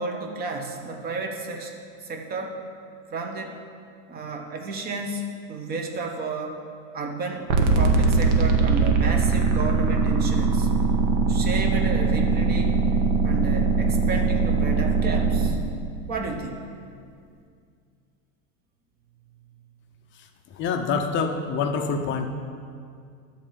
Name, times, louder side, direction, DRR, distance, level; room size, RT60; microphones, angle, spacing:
voice 1, 0.0-1.7 2.0-2.6 3.1-3.6 4.1-6.6 6.9-10.7 11.2-12.8 13.2-15.6 16.1-16.7, right 3 dB, 25° right, 2 dB, 0.9 m, -32 dB
sound 1, 7.5-15.5, right 4 dB, 65° right, 1.2 m, -21 dB
voice 2, 20.1-22.3, left 5 dB, 30° left, 5 dB, 0.5 m, -27 dB
11.0 x 4.4 x 7.6 m, 2.3 s
supercardioid pair, 155°, 40 cm